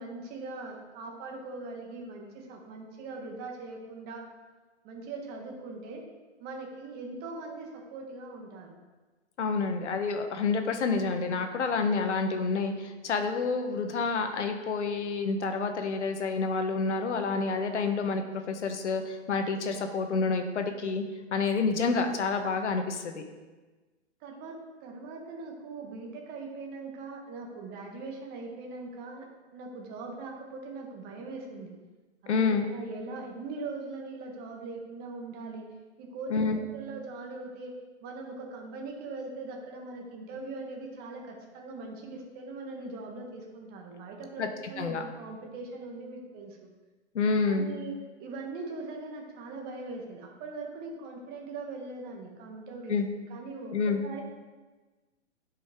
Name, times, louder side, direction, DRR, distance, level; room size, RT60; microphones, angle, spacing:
voice 1, 0.0-4.2 4.8-6.0 6.4-8.7 24.2-29.3 29.5-31.7 32.2-35.7 36.0-37.7 38.0-46.7 47.5-53.0 53.3-54.2, right 3 dB, 25° right, 1 dB, 1.4 m, -41 dB
voice 2, 9.4-21.0 21.3-23.2 32.3-32.6 36.3-36.6 44.4-44.5 44.8-45.0 47.1-47.7 52.9-53.1 53.7-54.0, left 4 dB, 75° left, 6 dB, 1.1 m, -28 dB
10.5 x 5.1 x 3.6 m, 1.3 s
hypercardioid pair, 135°, 35 cm